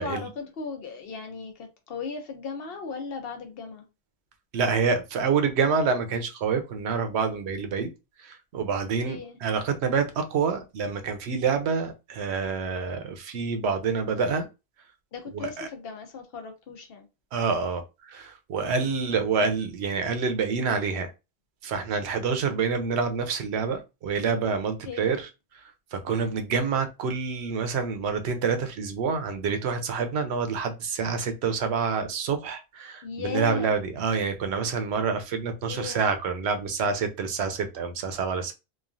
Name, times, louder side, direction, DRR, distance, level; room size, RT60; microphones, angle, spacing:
voice 1, 0.0-3.8 9.1-9.4 15.1-17.1 18.6-18.9 24.8-25.2 26.1-26.3 33.0-33.8 35.7-36.0, left 5 dB, 65° left, 0.9 m, -37 dB
voice 2, 4.5-7.9 8.2-14.5 15.3-15.7 17.3-21.1 21.6-25.3 25.9-38.5, right 5 dB, 85° right, 0.9 m, -27 dB
3.0 x 2.4 x 2.4 m
omnidirectional pair, 1.1 m